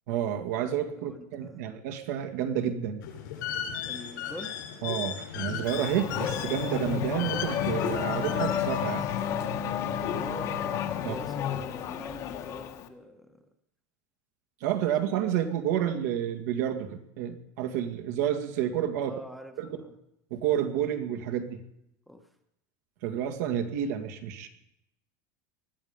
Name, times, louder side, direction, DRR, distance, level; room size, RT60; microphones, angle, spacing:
voice 1, 0.1-3.0 4.8-9.1 11.1-11.2 14.6-19.1 19.6-19.8 20.3-21.6 23.0-24.5, right 10 dB, 65° right, 7 dB, 2.1 m, -30 dB
voice 2, 0.9-1.7 3.9-4.6 10.2-10.6 11.0-13.4 19.0-20.0 22.1-22.3, left 1 dB, ahead, 5 dB, 1.1 m, -45 dB
sound 1, 3.0-9.3, left 9 dB, 90° left, 5.8 m, -36 dB
Race car auto racing / Accelerating revving vroom, 5.6-12.9, left 9 dB, 35° left, 1.2 m, -31 dB
20.5 x 13.0 x 5.3 m, 0.81 s
supercardioid pair, 175°, 10 cm